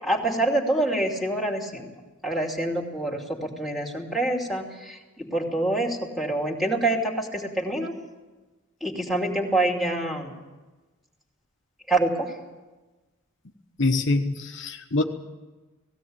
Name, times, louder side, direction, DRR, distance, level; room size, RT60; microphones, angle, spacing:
voice 1, 0.0-1.9 2.2-7.9 8.8-10.3 11.9-12.3, right 2 dB, ahead, -2 dB, 2.7 m, -26 dB
voice 2, 13.8-15.0, left 2 dB, 60° left, 4 dB, 1.1 m, -24 dB
18.0 x 16.5 x 8.8 m, 1.2 s
head